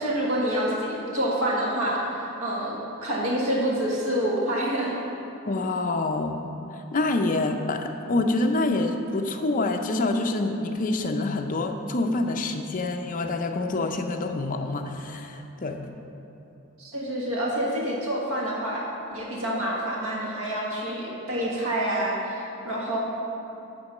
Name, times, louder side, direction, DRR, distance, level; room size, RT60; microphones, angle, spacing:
voice 1, 0.0-2.7 3.0-5.0 16.8-18.8 19.1-23.0, right 1 dB, 70° right, -4 dB, 1.5 m, -27 dB
voice 2, 5.4-6.4 6.9-15.8, left 2 dB, 40° left, 5 dB, 0.5 m, -26 dB
9.0 x 3.8 x 6.5 m, 3.0 s
head